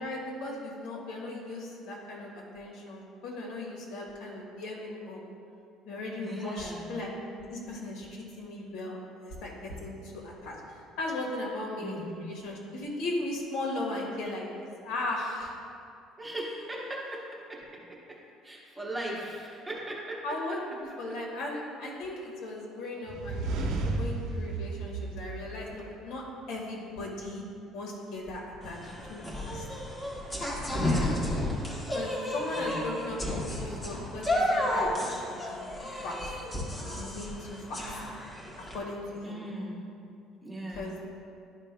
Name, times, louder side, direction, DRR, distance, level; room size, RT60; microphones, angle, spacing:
voice 1, 0.0-5.2 5.8-7.1 7.4-15.6 20.2-23.6 24.0-27.4 27.7-29.6 30.7-31.0 31.9-36.3 36.8-37.8 38.7-39.4 40.7-41.0, left 2 dB, 75° left, -2 dB, 1.5 m, -37 dB
voice 2, 6.2-6.9 11.8-12.2 16.2-18.2 18.4-20.4 30.7-31.2 32.5-33.0 37.8-38.1 39.2-39.9 40.4-40.9, right 1 dB, 10° right, -4 dB, 0.9 m, -38 dB
sound 1, 23.1-26.0, right 2 dB, 70° right, 0.8 m, -33 dB
sound 2, 28.6-38.8, left 1 dB, 15° left, 1.0 m, -32 dB
11.0 x 5.3 x 2.2 m, 2.5 s
cardioid pair, 170°, 0 cm